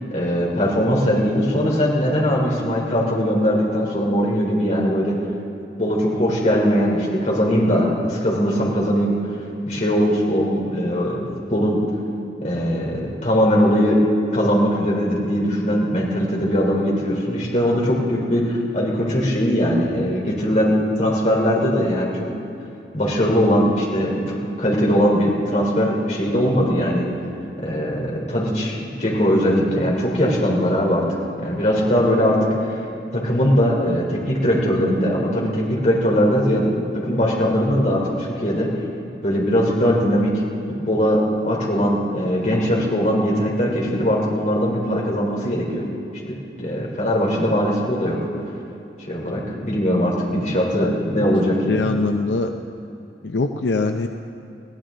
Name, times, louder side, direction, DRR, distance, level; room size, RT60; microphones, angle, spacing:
voice 1, 0.1-5.2 5.8-9.1 9.7-11.2 11.5-11.8 12.4-14.0 14.3-22.3 22.9-27.1 27.6-31.0 31.4-32.8 33.1-38.7 39.2-40.4 40.8-45.8 46.6-48.2 49.1-51.9, equal, 45° left, -3 dB, 3.7 m, -20 dB
voice 2, 51.7-52.5 53.2-54.1, left 3 dB, 90° left, 6 dB, 0.6 m, -22 dB
21.5 x 16.5 x 3.9 m, 2.8 s
head